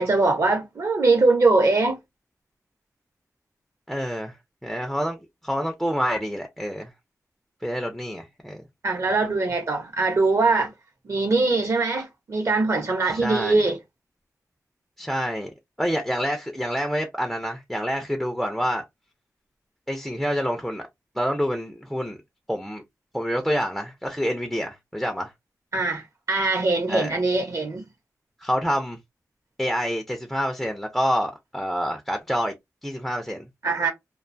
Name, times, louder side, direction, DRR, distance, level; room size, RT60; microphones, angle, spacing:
voice 1, 0.0-2.0 8.8-10.7 11.0-13.8 25.7-27.9 33.6-33.9, right 3 dB, 60° right, 0.8 m, -22 dB
voice 2, 3.9-4.4 4.6-6.9 7.6-8.6 13.0-13.6 15.0-15.5 15.8-18.8 19.9-20.9 21.2-22.2 22.5-22.8 23.1-25.3 26.9-27.1 28.4-29.0 29.6-32.5 32.8-33.5, equal, ahead, 0.4 m, -27 dB
2.3 x 2.2 x 2.5 m
wide cardioid pair, 105°, 6 cm